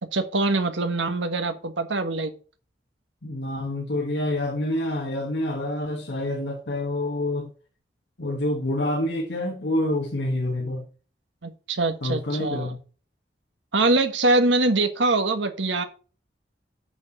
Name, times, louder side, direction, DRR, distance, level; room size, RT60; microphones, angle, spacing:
voice 1, 0.0-2.3 11.4-12.7 13.7-15.8, right 2 dB, 90° right, 1.5 m, -23 dB
voice 2, 3.2-7.5 8.2-10.8 12.0-12.8, left 1 dB, 70° left, 1.7 m, -27 dB
6.9 x 6.1 x 6.5 m
head